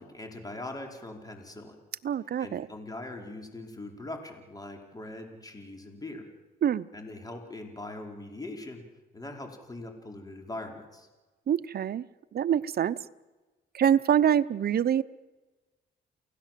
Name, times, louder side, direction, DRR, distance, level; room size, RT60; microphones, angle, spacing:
voice 1, 0.0-1.8 2.4-6.2 6.9-8.8 9.1-11.1, left 2 dB, 20° left, 3 dB, 4.8 m, -41 dB
voice 2, 2.0-2.7 6.6-6.9 11.5-12.0 12.3-13.0 13.7-15.0, right 9 dB, 50° right, 16 dB, 0.8 m, -25 dB
28.5 x 17.0 x 7.6 m, 1.2 s
cardioid pair, 90°, 20 cm